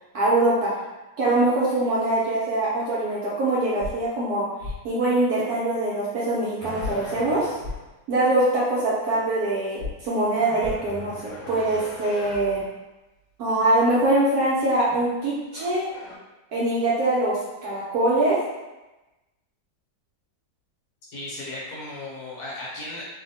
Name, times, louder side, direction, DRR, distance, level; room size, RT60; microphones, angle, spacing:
voice 1, 0.1-0.7 1.2-4.5 4.8-7.5 8.1-12.6 13.4-15.9 16.5-17.4 17.6-18.4, right 2 dB, 70° right, -6 dB, 0.9 m, -23 dB
sound 1, 3.8-3.9 4.6-4.8 6.8-6.9 7.6-7.8 9.8-9.9 10.6-10.7, left 4 dB, 50° right, 1.1 m, -31 dB
sound 2, 6.6-7.9 10.3-12.7 14.8-15.1 15.5-16.2, left 2 dB, 85° left, 1.3 m, -40 dB
voice 2, 21.1-23.0, left 2 dB, 65° left, -6 dB, 1.2 m, -35 dB
3.0 x 2.1 x 2.7 m, 1.1 s
omnidirectional pair, 2.0 m